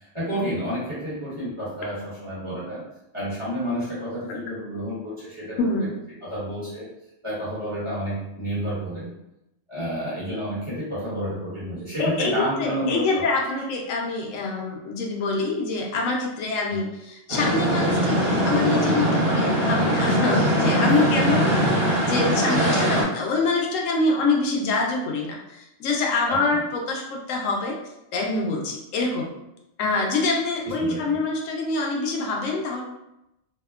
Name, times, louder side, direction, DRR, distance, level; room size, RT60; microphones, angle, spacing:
voice 1, 0.1-2.8 3.1-5.9 6.2-6.9 7.2-9.1 9.7-13.2 20.9-21.0 21.3-21.7 26.3-26.6 30.6-31.2, equal, 25° right, -10 dB, 1.0 m, -30 dB
voice 2, 5.6-5.9 12.0-21.5 22.0-27.7 28.1-29.3 29.8-32.8, left 3 dB, 90° left, 0 dB, 1.0 m, -25 dB
sound 1, 17.3-23.0, equal, 50° right, 1.4 m, -21 dB
2.7 x 2.1 x 2.3 m, 0.88 s
omnidirectional pair, 1.3 m